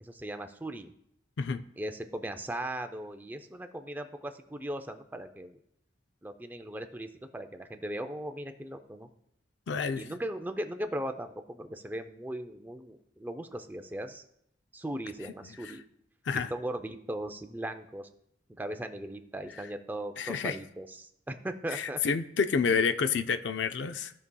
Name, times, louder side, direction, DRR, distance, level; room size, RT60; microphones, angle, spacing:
voice 1, 0.0-0.9 1.8-5.6 6.2-9.1 9.9-14.2 14.7-15.8 16.3-18.1 18.6-22.0, right 1 dB, 10° right, 6 dB, 0.4 m, -38 dB
voice 2, 9.7-10.1 15.6-15.7 16.3-16.5 20.2-20.6 21.7-24.1, left 5 dB, 75° left, 10 dB, 0.4 m, -29 dB
15.5 x 5.4 x 2.3 m, 0.75 s
head